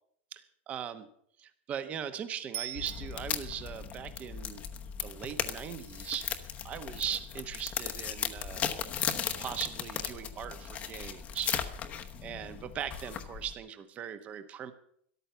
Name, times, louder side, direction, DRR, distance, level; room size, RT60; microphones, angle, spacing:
voice 1, 0.3-1.1 1.4-4.6 5.0-6.3 6.6-8.7 9.4-11.5 12.2-14.7, right 9 dB, 20° right, 11 dB, 1.0 m, -39 dB
Bicycle bell, 2.5-3.7 12.7-12.8, right 12 dB, 60° right, 0.9 m, -42 dB
sound 1, 2.7-13.5, left 8 dB, 20° left, 1.0 m, -37 dB
13.5 x 12.0 x 6.9 m, 0.65 s
supercardioid pair, 170°, 7 cm